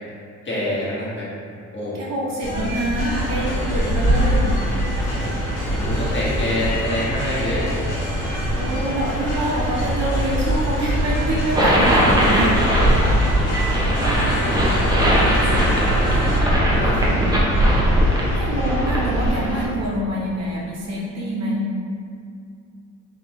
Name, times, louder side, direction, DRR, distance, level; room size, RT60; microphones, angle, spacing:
voice 1, 0.4-1.3 1.7-2.0 5.0-7.7 13.3-16.2 16.7-17.3, left 1 dB, 40° left, -8 dB, 1.5 m, -28 dB
voice 2, 1.9-4.5 8.6-12.6 16.9-17.6 18.3-21.7, right 1 dB, 60° right, -6 dB, 1.0 m, -25 dB
sound 1, 2.4-16.4, equal, 80° left, 1.1 m, -23 dB
sound 2, 3.1-19.7, equal, 10° left, 1.2 m, -30 dB
sound 3, 11.6-19.6, equal, 15° right, 0.7 m, -20 dB
3.9 x 3.2 x 3.1 m, 2.4 s
cardioid pair, 90°, 30 cm